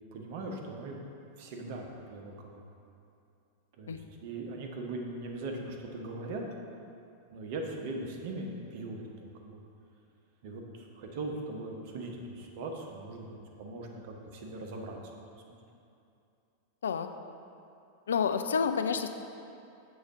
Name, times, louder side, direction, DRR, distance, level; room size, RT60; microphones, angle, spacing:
voice 1, 0.1-1.0 1.4-2.6 3.8-6.4 7.3-9.6 10.4-15.4, right 2 dB, 50° right, 1 dB, 0.9 m, -40 dB
voice 2, 18.1-19.1, left 6 dB, 65° left, 8 dB, 0.3 m, -29 dB
6.9 x 3.9 x 5.7 m, 2.6 s
figure-of-eight pair, 90°, 0 cm